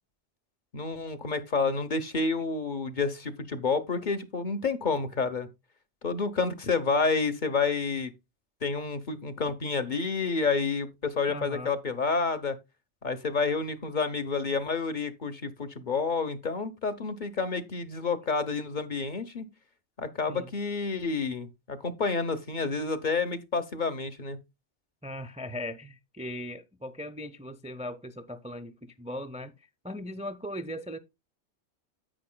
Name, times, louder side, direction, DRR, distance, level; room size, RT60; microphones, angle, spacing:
voice 1, 0.7-5.5 6.0-8.1 8.6-12.6 13.0-19.5 20.0-24.4, left 4 dB, 45° left, 1.0 m, -29 dB
voice 2, 11.3-11.8 20.3-20.5 25.0-31.0, left 1 dB, 10° right, 0.5 m, -39 dB
10.0 x 8.5 x 2.2 m
omnidirectional pair, 1.2 m